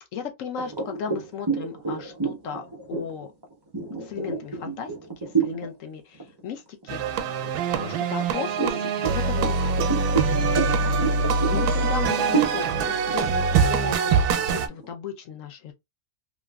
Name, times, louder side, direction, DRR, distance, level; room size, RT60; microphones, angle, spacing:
voice 1, 0.1-3.3 4.0-9.8 10.7-15.7, left 7 dB, 65° left, 1.0 m, -36 dB
sound 1, 0.6-5.7 6.1-6.4 6.8-7.6 8.2-14.9, right 5 dB, 40° right, 0.3 m, -29 dB
sound 2, 6.9-14.7, right 5 dB, 85° right, 1.1 m, -23 dB
3.0 x 2.5 x 2.3 m
omnidirectional pair, 1.6 m